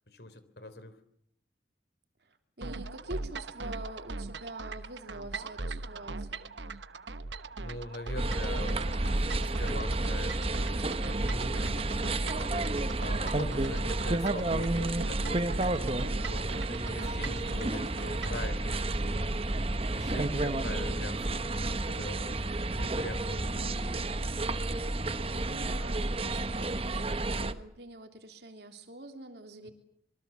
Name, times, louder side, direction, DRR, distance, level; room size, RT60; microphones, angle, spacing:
voice 1, 0.1-1.0 7.6-9.3 9.6-10.9 11.2-19.4 19.9-22.4 22.7-23.9 29.6-29.7, left 1 dB, 65° left, 13 dB, 3.5 m, -43 dB
voice 2, 2.2-6.5 25.3-29.7, right 2 dB, 65° right, 5 dB, 3.2 m, -45 dB
sound 1, 2.6-18.5, right 3 dB, 85° right, 1.1 m, -39 dB
sound 2, 8.2-27.5, right 2 dB, 30° right, 1.0 m, -31 dB
26.5 x 24.0 x 7.2 m, 0.73 s
head